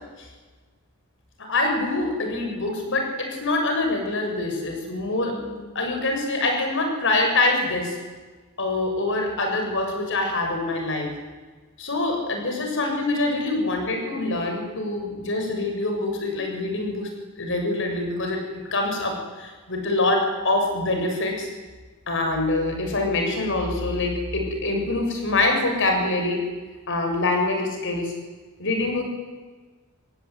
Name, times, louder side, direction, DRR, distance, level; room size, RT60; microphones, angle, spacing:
voice 1, 1.4-8.0 8.6-11.1 11.8-17.1 17.4-18.4 18.7-21.5 22.1-26.4 26.9-28.1 28.6-29.0, left 2 dB, 60° left, 3 dB, 6.9 m, -25 dB
27.0 x 22.0 x 9.7 m, 1.3 s
head